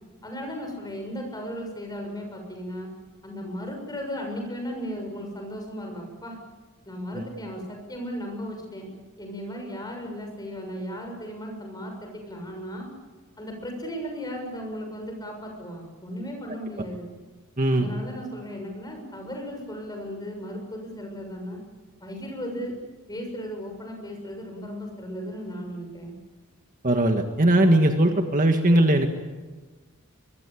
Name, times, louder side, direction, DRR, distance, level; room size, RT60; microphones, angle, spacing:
voice 1, 0.2-2.9 3.2-6.4 6.8-8.9 9.2-12.9 13.4-17.1 17.7-21.6 22.0-22.7 23.1-26.1, equal, 20° left, 3 dB, 6.8 m, -36 dB
voice 2, 17.6-17.9 26.8-29.1, right 1 dB, 35° right, 4 dB, 1.8 m, -20 dB
24.0 x 23.0 x 8.6 m, 1.3 s
head